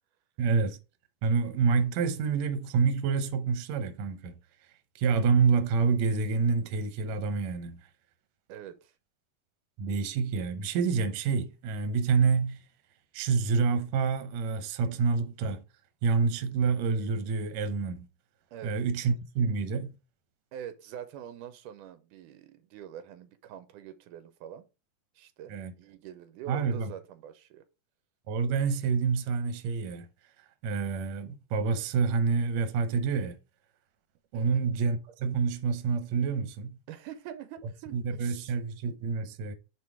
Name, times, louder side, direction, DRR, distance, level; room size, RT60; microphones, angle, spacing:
voice 1, 0.4-0.8 1.2-4.4 5.0-7.8 9.8-12.6 13.1-15.6 16.0-18.1 18.6-19.9 25.5-25.7 26.5-26.9 28.3-30.1 30.6-33.4 34.3-36.8 37.9-39.5, right 5 dB, 70° right, 1.9 m, -27 dB
voice 2, 8.5-9.0 18.5-18.8 20.5-24.7 25.2-27.7 34.3-34.7 36.9-38.5, right 10 dB, 85° right, 2.2 m, -45 dB
5.7 x 4.6 x 4.7 m
omnidirectional pair, 3.7 m